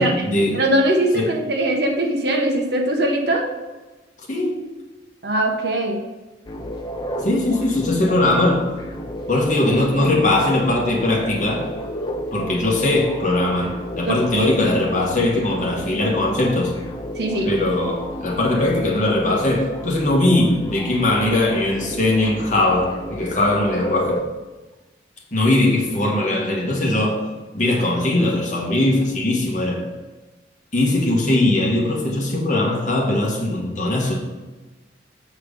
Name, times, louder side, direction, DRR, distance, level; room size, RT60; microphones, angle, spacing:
voice 1, 0.0-0.6 1.1-1.3 4.3-4.6 7.2-8.6 9.3-11.7 12.3-16.7 17.4-24.2 25.3-27.2 27.5-29.9 30.7-34.2, left 1 dB, 40° left, -1 dB, 1.4 m, -20 dB
voice 2, 0.5-3.4 5.2-6.0 14.1-14.6 17.2-17.5, right 1 dB, 60° right, 1 dB, 1.1 m, -21 dB
sound 1, 6.5-24.2, equal, 20° left, 0.5 m, -32 dB
7.3 x 4.6 x 5.1 m, 1.2 s
head